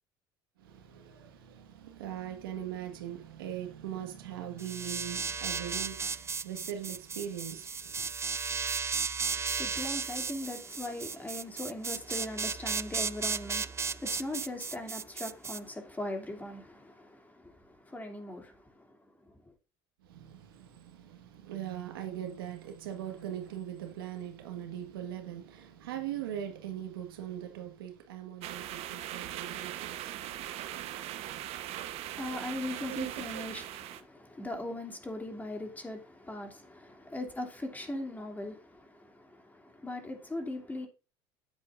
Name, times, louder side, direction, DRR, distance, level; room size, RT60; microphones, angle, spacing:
voice 1, 0.6-8.1 20.0-30.1 32.9-33.4, right 10 dB, 90° right, 1.6 m, -41 dB
sound 1, 4.6-15.6, right 5 dB, 25° right, 0.5 m, -35 dB
voice 2, 9.3-19.5 31.6-40.9, left 1 dB, 15° left, 2.8 m, -40 dB
sound 2, 28.4-34.0, right 12 dB, 60° right, 1.1 m, -40 dB
10.0 x 8.0 x 2.6 m
hypercardioid pair, 80°, 12 cm